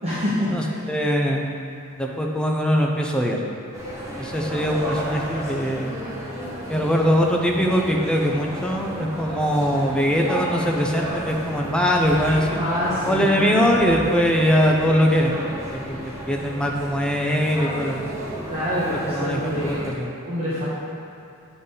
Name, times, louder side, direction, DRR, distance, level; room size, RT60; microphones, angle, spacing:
voice 1, 0.0-0.9 12.5-13.3 18.5-19.9 20.1-20.7, equal, 30° right, -11 dB, 1.2 m, -26 dB
voice 2, 0.9-1.5 2.0-3.4 4.2-5.9 6.7-12.6 13.0-15.3 15.7-16.0 16.3-18.1 19.1-20.1, equal, 5° left, 0 dB, 0.6 m, -21 dB
sound 1, 3.7-19.9, equal, 15° right, 1.4 m, -32 dB
9.1 x 4.0 x 3.9 m, 2.6 s
head